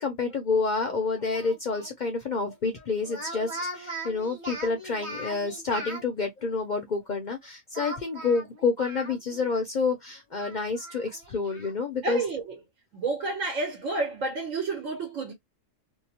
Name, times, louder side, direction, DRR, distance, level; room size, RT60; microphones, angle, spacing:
voice 1, 0.0-12.2, left 4 dB, 55° left, 0.5 m, -29 dB
Speech, 1.3-1.9 3.0-6.0 7.7-9.5 9.8-9.9 10.3-11.7, right 1 dB, 25° right, 1.0 m, -39 dB
voice 2, 12.0-12.6 12.9-15.3, right 3 dB, 85° right, 1.3 m, -30 dB
2.8 x 2.0 x 2.7 m
omnidirectional pair, 1.3 m